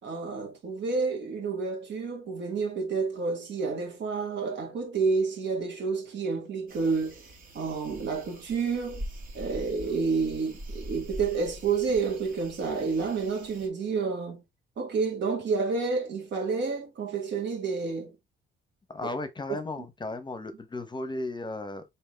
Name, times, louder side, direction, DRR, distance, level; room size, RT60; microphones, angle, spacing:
voice 1, 0.0-7.2 7.5-9.0 9.3-14.4 14.8-18.2 19.5-19.8, right 4 dB, 65° right, 2.2 m, -29 dB
sound 1, 6.7-13.7, right 1 dB, 45° right, 2.0 m, -43 dB
voice 2, 18.9-21.8, left 2 dB, 20° left, 0.8 m, -35 dB
4.2 x 3.6 x 3.2 m
cardioid pair, 90°, 20 cm